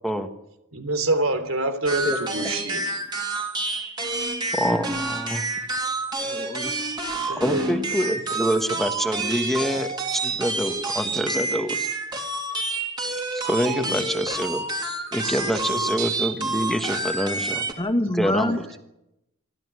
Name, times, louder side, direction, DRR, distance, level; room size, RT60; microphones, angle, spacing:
voice 1, 0.7-2.8 7.3-8.0 13.7-13.9 15.2-15.9, right 2 dB, 85° right, 9 dB, 3.3 m, -27 dB
sound 1, 1.9-17.7, right 2 dB, 20° right, 2.7 m, -28 dB
voice 2, 4.5-5.5 7.4-11.9 13.3-14.6 15.1-17.7 18.1-18.6, equal, ahead, 6 dB, 1.4 m, -26 dB
voice 3, 6.2-6.7 17.8-18.8, left 1 dB, 20° left, 7 dB, 1.8 m, -26 dB
26.5 x 13.5 x 9.9 m, 0.90 s
head